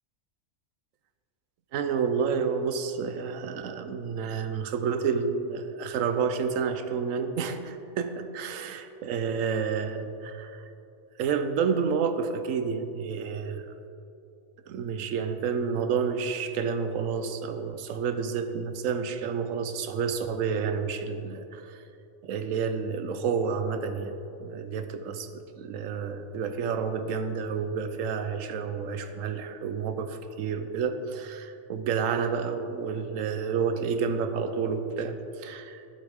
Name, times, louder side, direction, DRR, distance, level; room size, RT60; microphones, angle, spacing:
voice 1, 1.7-10.6 11.2-13.6 14.7-21.8 22.2-35.8, right 6 dB, 85° right, 8 dB, 1.0 m, -30 dB
11.5 x 7.2 x 3.5 m, 2.7 s
omnidirectional pair, 1.3 m